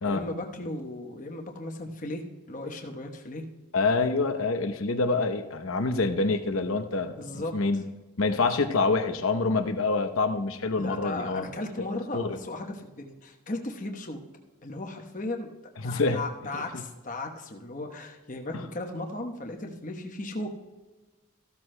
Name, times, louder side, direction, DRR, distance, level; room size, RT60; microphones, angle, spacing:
voice 1, 0.0-2.2 2.5-3.4 7.2-7.5 10.8-14.2 14.6-15.5 15.8-20.6, left 2 dB, 35° left, 3 dB, 1.0 m, -36 dB
voice 2, 3.7-7.8 8.2-11.5 12.1-12.4 15.8-16.2 16.5-16.6, left 3 dB, 70° left, 8 dB, 0.8 m, -26 dB
15.0 x 12.5 x 2.2 m, 1.2 s
head